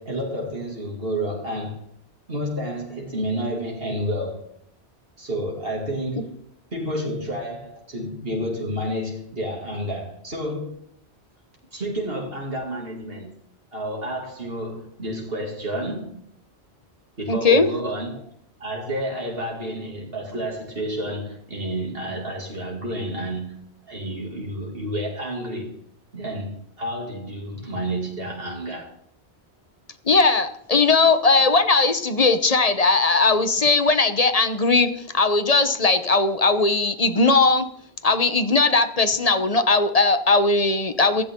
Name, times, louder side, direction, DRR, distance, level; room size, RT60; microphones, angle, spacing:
voice 1, 0.0-1.8 2.3-4.5 5.2-6.4 6.7-10.8 11.7-13.4 13.7-16.2 17.2-18.2 18.6-25.8 26.1-28.9, equal, 60° right, 2.9 m, -30 dB
voice 2, 17.3-17.7 30.1-37.7 38.0-41.2, left 3 dB, 35° left, 1.1 m, -19 dB
15.5 x 15.0 x 3.8 m
omnidirectional pair, 1.1 m